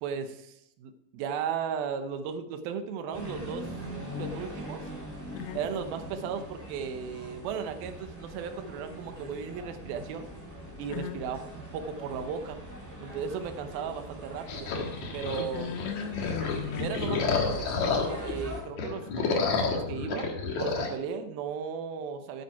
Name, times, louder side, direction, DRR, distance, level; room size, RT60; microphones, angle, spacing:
voice 1, 0.0-3.7 4.2-4.9 5.5-10.3 10.8-11.4 11.7-12.6 13.0-14.7 15.1-15.7 16.8-22.4, right 7 dB, 75° right, 7 dB, 2.7 m, -36 dB
sound 1, 3.1-18.6, equal, 5° left, 2.2 m, -42 dB
voice 2, 10.9-11.2 15.5-17.1, left 9 dB, 80° left, 11 dB, 2.6 m, -36 dB
sound 2, 14.5-18.3 18.7-20.9, left 4 dB, 55° left, 2.3 m, -30 dB
9.8 x 9.8 x 4.7 m, 0.79 s
omnidirectional pair, 4.6 m